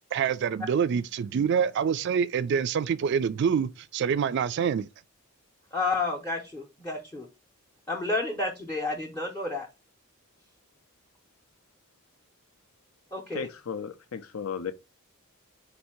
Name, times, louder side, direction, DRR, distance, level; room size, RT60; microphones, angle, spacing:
voice 1, 0.1-4.9, right 7 dB, 55° right, 0.3 m, -26 dB
voice 2, 5.7-7.3 7.9-9.7 13.1-13.5, left 3 dB, 10° left, 0.6 m, -30 dB
voice 3, 13.3-14.7, left 6 dB, 75° left, 0.5 m, -35 dB
4.1 x 2.7 x 4.3 m
head